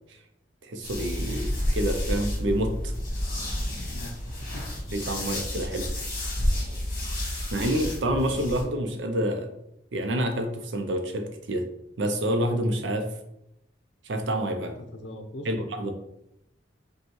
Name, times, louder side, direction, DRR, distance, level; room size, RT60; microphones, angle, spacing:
voice 1, 0.6-2.9 4.9-5.9 7.5-9.5 9.9-11.7 12.0-13.1 14.0-14.8 15.5-15.9, right 1 dB, 80° right, 6 dB, 0.6 m, -28 dB
sound 1, 0.8-8.6, left 1 dB, 50° left, 1.4 m, -30 dB
voice 2, 14.9-15.5, left 1 dB, 75° left, 5 dB, 0.6 m, -40 dB
5.1 x 2.3 x 3.1 m, 0.81 s
head